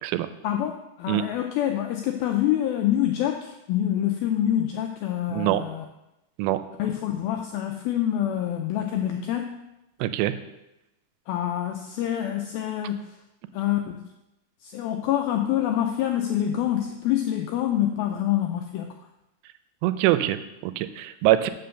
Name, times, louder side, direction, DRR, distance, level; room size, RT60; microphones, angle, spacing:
voice 1, 0.4-5.8 6.8-9.6 11.3-13.0 13.5-14.0 14.6-18.9, left 11 dB, 85° left, 3 dB, 2.1 m, -26 dB
voice 2, 5.3-5.7 6.4-6.6 10.0-10.4 19.8-21.5, right 14 dB, 85° right, 12 dB, 2.7 m, -24 dB
6.9 x 6.1 x 6.6 m, 0.92 s
omnidirectional pair, 4.9 m